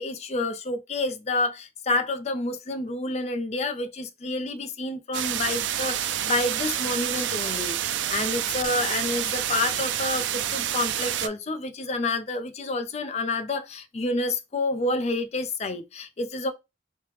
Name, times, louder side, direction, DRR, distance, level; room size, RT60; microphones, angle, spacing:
voice 1, 0.0-16.5, left 2 dB, 35° left, 0.4 m, -29 dB
sound 1, 5.1-11.3, right 11 dB, 85° right, 0.3 m, -28 dB
3.1 x 2.8 x 3.3 m
head